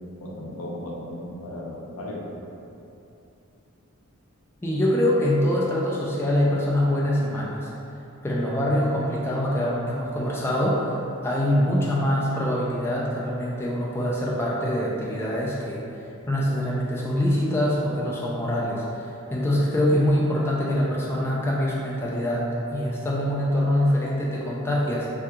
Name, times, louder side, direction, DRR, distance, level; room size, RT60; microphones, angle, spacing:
voice 1, 0.2-2.3, left 1 dB, 80° left, -3 dB, 0.6 m, -35 dB
voice 2, 4.6-7.7 8.2-15.8 16.3-22.4 22.7-25.1, left 1 dB, 10° left, -5 dB, 0.3 m, -24 dB
2.8 x 2.3 x 3.5 m, 2.7 s
head